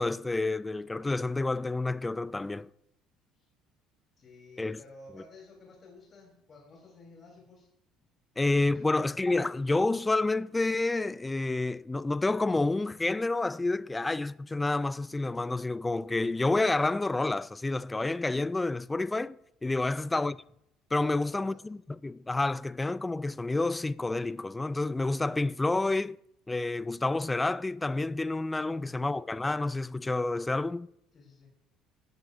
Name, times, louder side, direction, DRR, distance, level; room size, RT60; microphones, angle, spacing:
voice 1, 0.0-2.7 4.6-4.8 8.4-19.4 19.6-20.4 20.9-26.2 26.5-30.9, left 2 dB, 15° left, 0.3 m, -29 dB
voice 2, 4.2-7.7 8.7-8.8 19.8-20.1 21.1-21.6 31.1-31.5, left 2 dB, 35° left, 3.6 m, -54 dB
19.0 x 7.9 x 2.6 m
figure-of-eight pair, 55°, 0 cm